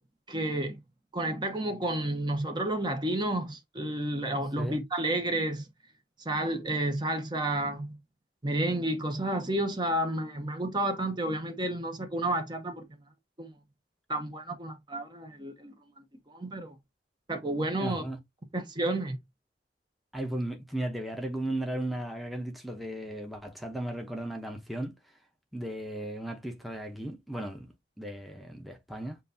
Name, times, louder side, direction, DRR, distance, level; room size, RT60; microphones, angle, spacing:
voice 1, 0.3-0.8 1.1-5.7 6.2-8.0 8.4-13.0 13.4-13.5 14.1-15.7 16.3-16.8 17.3-18.0 18.5-19.2, right 1 dB, 25° right, 0.9 m, -31 dB
voice 2, 4.3-4.8 17.8-18.2 20.1-24.9 25.5-29.2, right 1 dB, ahead, 0.8 m, -36 dB
7.4 x 2.6 x 2.7 m
head